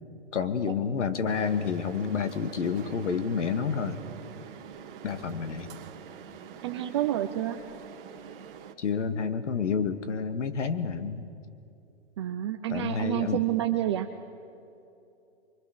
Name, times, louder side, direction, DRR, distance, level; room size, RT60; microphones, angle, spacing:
voice 1, 0.3-4.0 5.0-5.7 8.8-11.2 12.7-13.4, left 6 dB, 85° left, 10 dB, 2.0 m, -29 dB
sound 1, 1.3-8.7, right 7 dB, 50° right, 1.9 m, -45 dB
voice 2, 6.6-7.6 12.2-14.1, right 13 dB, 25° right, 5 dB, 0.6 m, -28 dB
26.0 x 23.5 x 6.7 m, 2.7 s
hypercardioid pair, 165°, 35 cm